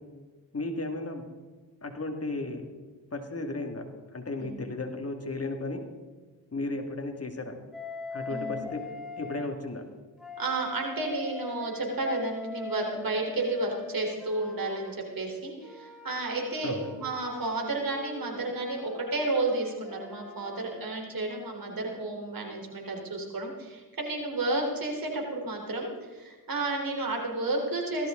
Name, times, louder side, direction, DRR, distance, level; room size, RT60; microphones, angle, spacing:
voice 1, 0.5-1.3 1.8-2.7 3.1-3.8 4.1-5.8 6.5-7.5 8.1-8.8 9.2-9.8 16.6-16.9, left 2 dB, 40° left, 4 dB, 2.3 m, -34 dB
Wind instrument woodwind instrument, 7.7-9.5 10.2-15.0 15.6-20.9, left 3 dB, ahead, 3.5 m, -42 dB
voice 2, 8.3-8.7 10.4-28.1, right 2 dB, 65° right, 1 dB, 4.1 m, -32 dB
17.5 x 14.0 x 3.9 m, 1.3 s
cardioid pair, 65°, 38 cm